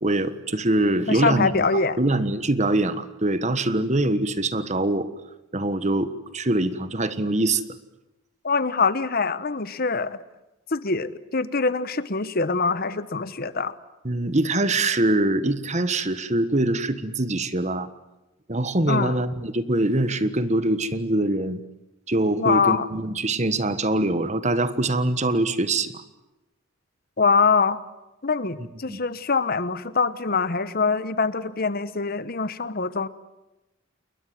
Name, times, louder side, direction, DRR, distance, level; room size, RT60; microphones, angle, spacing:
voice 1, 0.0-1.7 2.0-5.1 5.5-7.6 14.0-17.9 18.5-21.6 22.1-26.0 28.9-29.0, right 2 dB, 35° right, 13 dB, 1.4 m, -23 dB
voice 2, 1.1-2.0 8.4-10.2 10.7-13.8 18.9-19.2 22.4-22.9 27.2-27.8 28.2-33.1, left 4 dB, 50° left, 15 dB, 1.1 m, -24 dB
30.0 x 21.5 x 7.8 m, 0.98 s
head